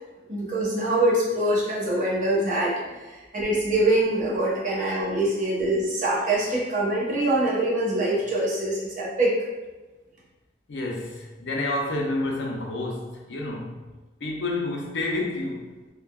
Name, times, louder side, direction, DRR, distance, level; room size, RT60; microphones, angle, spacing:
voice 1, 0.3-2.7 3.1-9.3, right 1 dB, 45° right, 0.8 m, -24 dB
voice 2, 10.7-13.8 14.2-15.8, left 2 dB, 80° left, 0.5 m, -29 dB
3.3 x 2.2 x 2.3 m
head